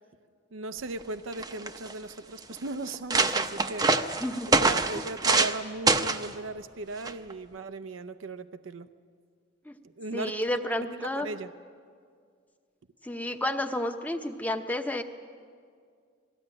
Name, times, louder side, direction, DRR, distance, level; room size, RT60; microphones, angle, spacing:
voice 1, 0.5-8.9 9.8-10.5 11.0-11.5, right 2 dB, 90° right, 11 dB, 0.6 m, -38 dB
Files of Papers falling on the floor, 1.0-1.1 1.3-1.9 2.5-2.6 2.9-5.6 5.9-6.3 7.0-7.3, right 3 dB, 20° right, 0.7 m, -25 dB
voice 2, 4.2-4.6 9.7-9.8 10.1-11.3 13.0-15.0, left 1 dB, 10° left, 6 dB, 0.9 m, -31 dB
21.5 x 15.0 x 9.8 m, 2.1 s
head